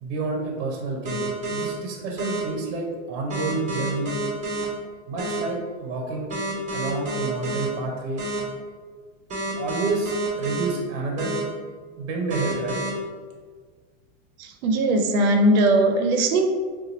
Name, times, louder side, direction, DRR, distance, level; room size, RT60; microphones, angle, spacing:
voice 1, 0.0-4.2 5.1-6.3 6.7-8.2 9.6-11.3 12.0-12.8, right 3 dB, 45° right, -1 dB, 0.8 m, -29 dB
sound 1, 1.0-1.6 2.2-2.4 3.3-4.6 5.2-5.4 6.3-7.6 8.2-8.4 9.3-10.6 11.2-11.4 12.3-12.9, right 1 dB, 15° right, 0.9 m, -29 dB
voice 2, 14.4-16.5, right 1 dB, 80° right, 4 dB, 0.7 m, -19 dB
2.8 x 2.4 x 3.9 m, 1.5 s
supercardioid pair, 140°, 42 cm